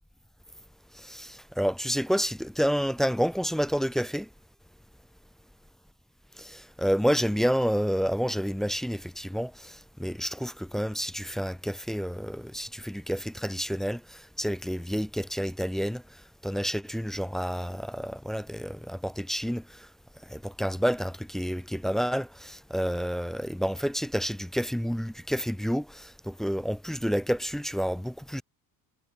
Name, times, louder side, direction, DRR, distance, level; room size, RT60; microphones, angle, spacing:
voice 1, 0.9-4.3 6.4-16.0 16.4-19.9 20.2-28.4, equal, ahead, 0.3 m, -29 dB
cardioid pair, 145°, 34 cm